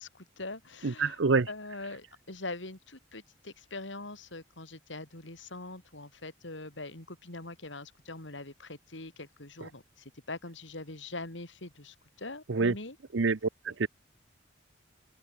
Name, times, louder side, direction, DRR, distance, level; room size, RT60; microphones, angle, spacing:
voice 1, 0.0-1.2 1.5-13.0, left 2 dB, 80° left, 4.2 m, -43 dB
voice 2, 0.8-1.5 12.5-12.7 13.1-13.4 13.7-13.9, right 4 dB, 80° right, 0.7 m, -26 dB
head